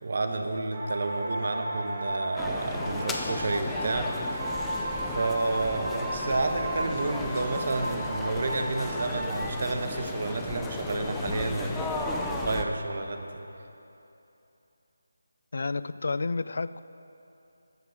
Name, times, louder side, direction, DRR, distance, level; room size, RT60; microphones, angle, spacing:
voice 1, 0.0-13.3, right 3 dB, 45° right, 5 dB, 1.2 m, -30 dB
sound 1, 0.7-9.4, right 1 dB, 25° right, 1.8 m, -35 dB
sound 2, 2.4-12.6, left 2 dB, 5° left, 0.5 m, -35 dB
voice 2, 15.5-16.8, left 3 dB, 55° left, 15 dB, 0.4 m, -30 dB
14.0 x 9.4 x 6.5 m, 2.9 s
figure-of-eight pair, 170°, 0 cm